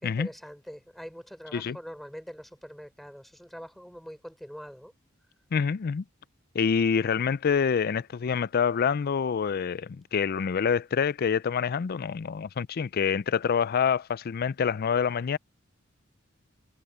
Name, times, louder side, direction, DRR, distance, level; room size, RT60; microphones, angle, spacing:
voice 1, 0.0-4.9, equal, ahead, 5.5 m, -43 dB
voice 2, 5.5-6.0 6.5-15.4, left 6 dB, 50° left, 0.4 m, -26 dB
head